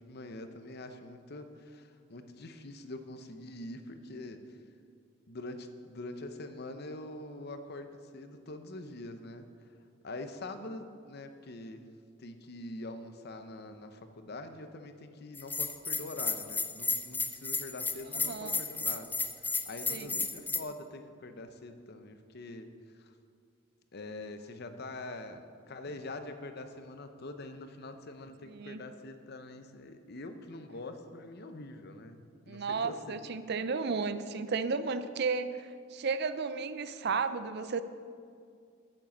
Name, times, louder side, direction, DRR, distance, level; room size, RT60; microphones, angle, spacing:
voice 1, 0.0-4.6 5.3-9.5 10.0-11.9 12.2-19.2 19.6-22.7 23.0-23.1 23.9-33.2, left 2 dB, 50° left, 8 dB, 0.8 m, -44 dB
Bell, 15.3-20.6, left 4 dB, 10° left, 0.4 m, -33 dB
voice 2, 18.1-18.6 19.9-20.3 28.5-28.8 32.5-37.8, right 5 dB, 55° right, 12 dB, 0.5 m, -33 dB
9.1 x 7.7 x 7.1 m, 2.2 s
head